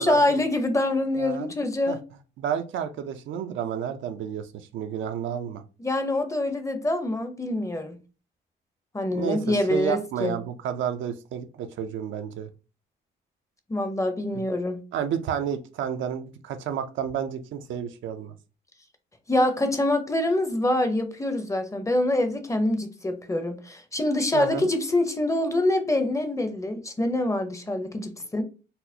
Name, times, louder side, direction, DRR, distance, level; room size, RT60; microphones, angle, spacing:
voice 1, 0.0-2.0 5.8-8.0 8.9-10.4 13.7-14.8 19.3-28.4, left 1 dB, 15° left, 0.6 m, -25 dB
voice 2, 1.2-1.5 1.9-2.0 2.4-5.6 9.1-9.4 9.7-12.5 14.9-18.3 24.3-24.7, right 8 dB, 75° right, 0.5 m, -31 dB
4.1 x 2.0 x 2.7 m
cardioid pair, 90°, 20 cm